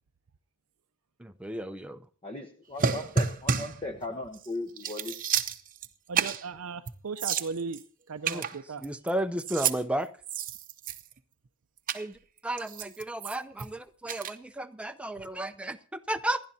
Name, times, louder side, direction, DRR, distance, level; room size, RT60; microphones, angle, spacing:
voice 1, 1.2-2.0 8.3-8.5 8.8-10.1 11.9-12.1 12.4-16.4, right 1 dB, 5° right, 0.6 m, -33 dB
voice 2, 2.2-5.2, left 2 dB, 25° left, 1.1 m, -37 dB
sound 1, 2.8-3.8 4.3-4.5 4.8-5.9 6.1-6.5 6.9-7.0 7.2-7.8 8.2-9.1 9.4-9.8 10.2-11.2 11.9-12.0 12.6-13.7 14.1-14.3, right 6 dB, 40° right, 0.8 m, -30 dB
voice 3, 6.1-7.8 8.1-8.8, right 4 dB, 75° right, 0.6 m, -37 dB
27.0 x 11.5 x 2.8 m
head